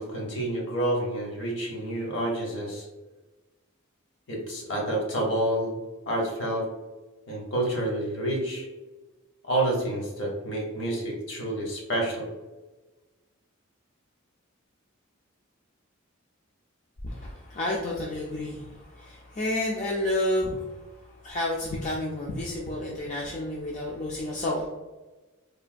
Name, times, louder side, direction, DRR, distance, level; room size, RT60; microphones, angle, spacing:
voice 1, 0.0-2.9 4.3-5.8 6.1-6.7 7.3-8.7 9.4-12.3, right 1 dB, 60° left, -1 dB, 0.8 m, -29 dB
voice 2, 17.0-20.6 21.2-24.7, left 1 dB, 35° left, -3 dB, 0.3 m, -30 dB
3.2 x 2.2 x 2.4 m, 1.2 s
head